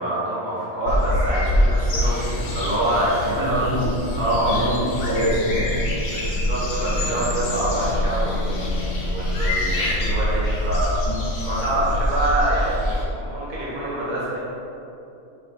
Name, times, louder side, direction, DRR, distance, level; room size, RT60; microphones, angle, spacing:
voice 1, 0.0-3.6 4.1-4.7 6.1-10.9 11.4-14.4, right 1 dB, 35° right, -9 dB, 1.6 m, -25 dB
sound 1, 0.9-13.1, left 1 dB, 85° left, 1.4 m, -25 dB
voice 2, 3.3-3.9 4.4-5.8 11.1-11.3, equal, 80° right, -9 dB, 2.0 m, -25 dB
sound 2, 5.7-10.7, left 1 dB, 65° left, 0.9 m, -31 dB
6.8 x 3.2 x 4.3 m, 2.8 s
omnidirectional pair, 1.4 m